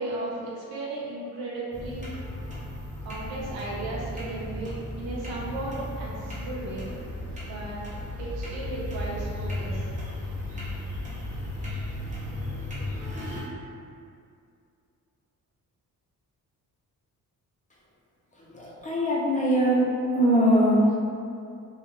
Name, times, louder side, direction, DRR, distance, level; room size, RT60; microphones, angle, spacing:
voice 1, 0.0-2.1 3.0-6.9 7.4-7.8 8.2-9.9, right 2 dB, 90° right, -5 dB, 0.7 m, -35 dB
sound 1, 1.7-13.4, left 1 dB, 20° right, 0.7 m, -35 dB
voice 2, 18.5-19.8 20.1-20.8, equal, 25° left, -5 dB, 0.4 m, -21 dB
2.3 x 2.2 x 2.9 m, 2.5 s
cardioid pair, 120°, 36 cm